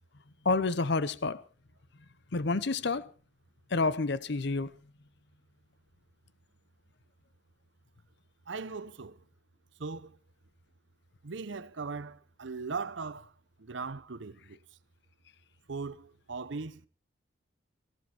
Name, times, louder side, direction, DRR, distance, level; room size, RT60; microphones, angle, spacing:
voice 1, 0.4-1.4 2.3-3.0 3.7-4.7, left 3 dB, 65° left, 0.7 m, -28 dB
voice 2, 8.5-9.2 9.8-10.2 11.2-13.3 13.6-14.6 15.7-16.8, right 4 dB, 75° right, 0.8 m, -39 dB
19.0 x 15.0 x 4.4 m
head